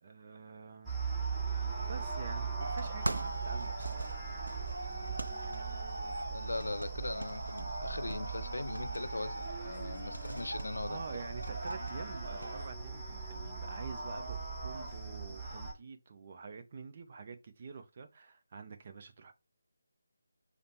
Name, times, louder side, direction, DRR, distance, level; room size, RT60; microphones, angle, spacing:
voice 1, 0.0-1.0 1.8-4.1 10.7-19.3, right 5 dB, 40° right, 0.6 m, -47 dB
sound 1, 0.8-15.7, right 5 dB, 10° right, 1.0 m, -40 dB
sound 2, 2.6-12.6, right 1 dB, 85° right, 0.3 m, -41 dB
voice 2, 6.3-11.0, left 2 dB, 80° left, 0.4 m, -39 dB
5.0 x 2.1 x 2.9 m
figure-of-eight pair, 160°, 0 cm